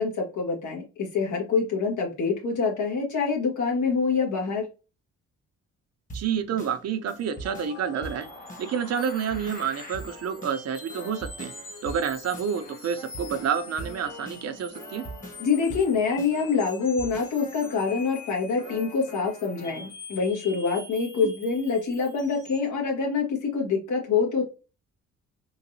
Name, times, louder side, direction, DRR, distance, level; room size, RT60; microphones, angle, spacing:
voice 1, 0.0-4.7 15.4-24.4, left 5 dB, 75° left, 0 dB, 1.6 m, -26 dB
sound 1, 6.1-19.9, right 1 dB, 25° left, 1.4 m, -43 dB
voice 2, 6.1-8.3 8.6-11.5 11.8-15.0 21.2-21.3, right 7 dB, 55° right, 9 dB, 0.6 m, -29 dB
sound 2, 7.2-22.7, left 4 dB, 55° left, 1.9 m, -46 dB
3.9 x 2.6 x 2.7 m, 0.32 s
cardioid pair, 90°, 30 cm